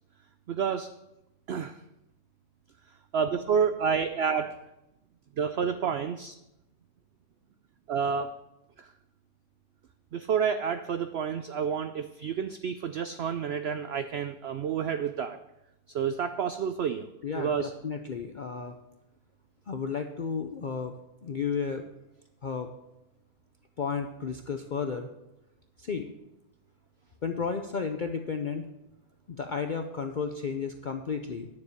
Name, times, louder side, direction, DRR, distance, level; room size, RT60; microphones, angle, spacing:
voice 1, 0.5-0.9 1.5-1.7 3.1-4.5 5.4-6.3 7.9-8.3 8.8-8.9 10.1-15.4 15.9-17.1 17.4-17.7, right 7 dB, 80° right, 10 dB, 0.5 m, -29 dB
voice 2, 17.2-18.7 19.7-20.9 21.2-21.8 22.4-22.7 23.8-25.1 25.8-26.1 27.2-28.7 29.3-31.5, left 5 dB, 60° left, 6 dB, 0.5 m, -33 dB
9.7 x 7.2 x 6.6 m, 0.90 s
omnidirectional pair, 1.6 m